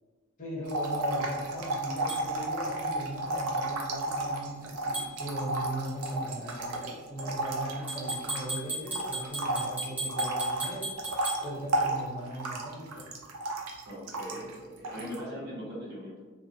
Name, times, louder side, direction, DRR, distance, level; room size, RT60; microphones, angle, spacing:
voice 1, 0.4-10.9 11.4-13.0, right 1 dB, 35° left, -5 dB, 0.7 m, -38 dB
sound 1, 0.7-8.6 8.9-14.5 14.8-15.2, right 2 dB, 70° right, 0.4 m, -32 dB
sound 2, 2.1-2.2 4.9-5.1 7.9-11.4, right 2 dB, 5° right, 0.5 m, -36 dB
voice 2, 7.6-7.9 13.9-16.2, equal, 50° right, -6 dB, 0.8 m, -41 dB
2.2 x 2.1 x 2.7 m, 1.3 s
head